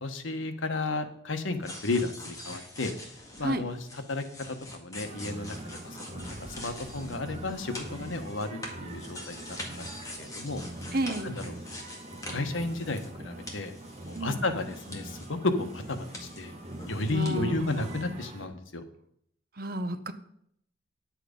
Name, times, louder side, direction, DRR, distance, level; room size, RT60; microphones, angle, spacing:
voice 1, 0.0-2.9 3.4-9.9 10.2-10.6 10.9-11.0 11.2-11.5 12.1-13.7 14.1-16.5 16.9-18.8, left 2 dB, 90° left, 8 dB, 1.2 m, -33 dB
sound 1, 1.6-13.2 13.5-15.3 15.6-17.3 17.6-18.0, left 1 dB, 20° left, 1.8 m, -45 dB
sound 2, 5.0-18.5, right 1 dB, 35° right, 1.2 m, -43 dB
voice 2, 10.9-11.4 14.1-14.5 17.1-17.8 19.6-20.1, right 1 dB, 50° right, 10 dB, 0.8 m, -32 dB
10.5 x 7.7 x 5.2 m, 0.70 s
head